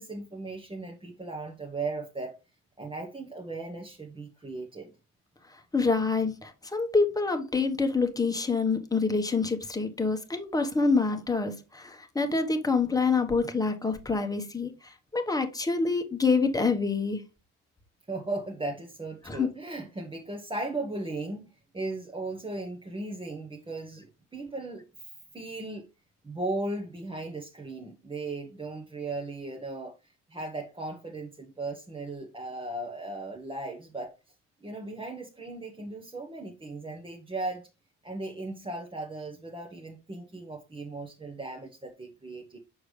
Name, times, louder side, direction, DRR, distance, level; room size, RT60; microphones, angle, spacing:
voice 1, 0.0-2.4 2.8-4.9 18.1-25.9 26.2-34.1 34.6-37.7 38.0-42.6, right 2 dB, 15° right, 1.1 m, -37 dB
voice 2, 5.7-14.7 15.1-17.2 19.3-19.5, left 4 dB, 10° left, 1.2 m, -26 dB
6.4 x 4.7 x 3.3 m
supercardioid pair, 80°, 32 cm